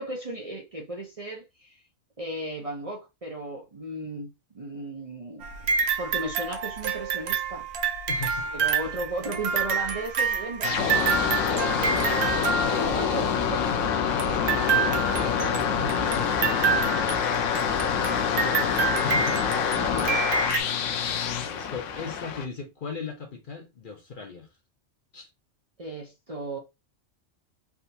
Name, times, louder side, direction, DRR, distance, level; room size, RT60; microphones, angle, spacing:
voice 1, 0.0-1.8 2.2-4.3 4.5-5.5 6.0-7.7 8.5-11.2 11.4-13.8 15.4-15.5 18.4-18.5 19.8-20.9 25.8-26.6, right 1 dB, 35° right, 0.6 m, -36 dB
sound 1, 5.4-13.3 14.2-20.6, right 6 dB, 65° right, 0.9 m, -28 dB
voice 2, 8.1-8.8 14.3-17.6 18.3-19.7 21.4-24.5 25.1-25.3, left 5 dB, 50° left, 0.7 m, -39 dB
sound 2, 10.6-22.5, left 7 dB, 80° left, 0.9 m, -26 dB
3.5 x 2.4 x 2.7 m
omnidirectional pair, 1.3 m